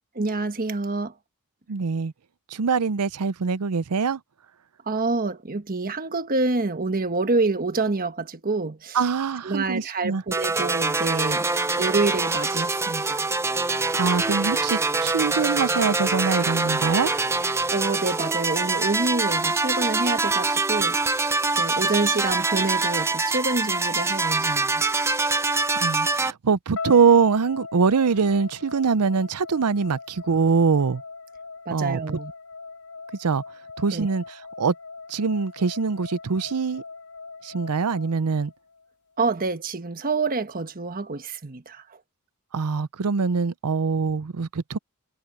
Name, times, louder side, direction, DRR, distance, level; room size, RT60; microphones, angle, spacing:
voice 1, 0.1-1.1 4.9-9.0 9.4-11.4 11.8-13.3 17.7-21.2 21.5-25.0 31.7-32.3 33.9-34.1 39.2-41.8, right 3 dB, 40° right, 1.3 m, -27 dB
voice 2, 1.7-2.1 2.5-4.2 8.9-10.2 14.0-17.1 25.8-31.0 31.7-32.2 33.2-33.4 33.8-34.2 34.6-34.7 35.1-36.8 37.4-38.5 42.5-44.8, right 5 dB, 85° right, 0.6 m, -23 dB
sound 1, 10.3-26.3, right 3 dB, 10° right, 0.6 m, -24 dB
sound 2, 26.8-38.9, left 4 dB, 85° left, 4.5 m, -40 dB
head